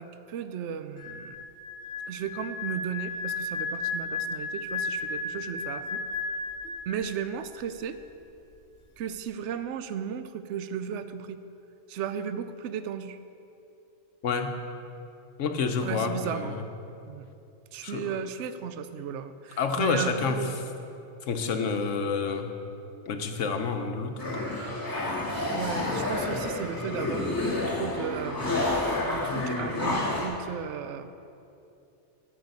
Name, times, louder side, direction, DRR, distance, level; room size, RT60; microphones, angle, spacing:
voice 1, 0.0-1.4 2.1-6.0 6.9-8.0 9.0-11.4 11.9-13.2 15.8-16.7 17.1-17.3 17.7-20.6 25.2-28.7 29.0-31.1, right 8 dB, 75° right, 11 dB, 0.9 m, -35 dB
sound 1, 1.0-7.3 7.6-7.9, left 4 dB, 55° left, 1.4 m, -34 dB
voice 2, 14.2-14.5 15.4-16.6 17.8-18.0 19.6-20.4 21.3-22.5 23.1-24.4, left 5 dB, 85° left, 6 dB, 1.2 m, -28 dB
sound 2, 24.2-30.3, left 2 dB, 15° left, 2.5 m, -29 dB
10.5 x 6.9 x 8.2 m, 2.7 s
omnidirectional pair, 1.2 m